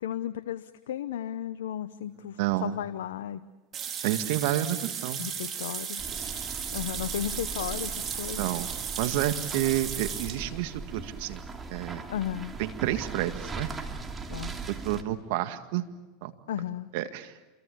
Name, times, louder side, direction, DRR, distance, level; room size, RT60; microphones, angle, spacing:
voice 1, 0.0-3.4 5.2-6.0 6.7-8.4 12.1-12.6 14.3-14.5 16.5-16.9, left 10 dB, 85° left, 13 dB, 0.7 m, -34 dB
voice 2, 2.4-2.7 4.0-5.3 8.4-8.7 9.0-11.4 11.7-12.0 12.6-13.7 14.8-15.9 16.2-16.3 16.9-17.3, right 13 dB, 65° right, 9 dB, 1.9 m, -29 dB
sound 1, 3.7-10.4, right 8 dB, 35° right, 3.7 m, -35 dB
sound 2, 6.0-15.0, right 4 dB, 20° right, 2.7 m, -39 dB
27.5 x 23.5 x 7.0 m, 1.2 s
hypercardioid pair, 100°, 0 cm